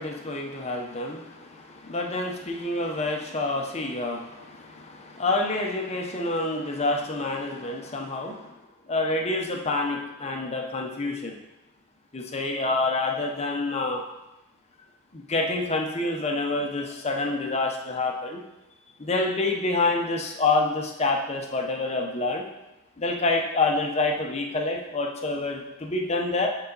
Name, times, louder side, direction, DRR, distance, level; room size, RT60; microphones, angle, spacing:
voice 1, 0.0-8.5 8.9-11.4 12.1-14.0 15.1-18.4 19.0-22.4 23.0-26.5, left 2 dB, 30° left, 2 dB, 0.8 m, -27 dB
8.2 x 4.0 x 4.0 m, 0.97 s
head